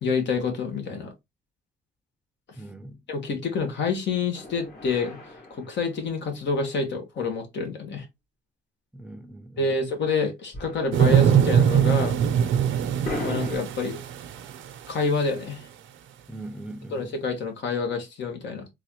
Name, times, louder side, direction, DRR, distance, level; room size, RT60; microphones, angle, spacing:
voice 1, 0.0-1.1 3.1-5.2 5.7-8.0 9.6-12.2 13.2-14.0 14.9-15.6 16.9-18.7, left 4 dB, 65° left, 1.5 m, -27 dB
voice 2, 2.6-3.0 8.9-9.7 16.3-17.1, right 2 dB, 5° right, 0.6 m, -40 dB
sound 1, 4.3-6.8 10.5-11.3 11.6-11.7 13.0-13.6, left 2 dB, 45° left, 1.9 m, -38 dB
sound 2, 10.9-14.9 15.4-15.5, right 9 dB, 75° right, 0.7 m, -22 dB
3.9 x 2.6 x 2.9 m
cardioid pair, 90°, 20 cm